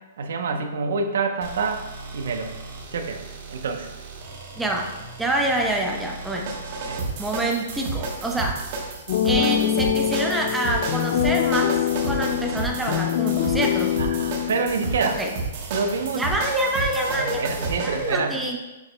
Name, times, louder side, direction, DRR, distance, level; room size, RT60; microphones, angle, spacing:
voice 1, 0.2-2.5 2.9-3.2 3.5-3.9 6.9-7.0 14.0-15.2 15.7-16.2 17.1-18.4, right 4 dB, 75° right, 6 dB, 0.8 m, -27 dB
sound 1, 1.4-18.2, right 3 dB, 45° right, 1.1 m, -32 dB
voice 2, 4.6-6.5 7.2-8.7 9.2-14.0 15.1-15.3 16.1-18.6, right 1 dB, 5° right, 1 dB, 0.7 m, -26 dB
sound 2, 9.1-15.1, left 10 dB, 55° left, 0.4 m, -24 dB
7.0 x 6.3 x 2.2 m, 1.0 s
hypercardioid pair, 155°, 0 cm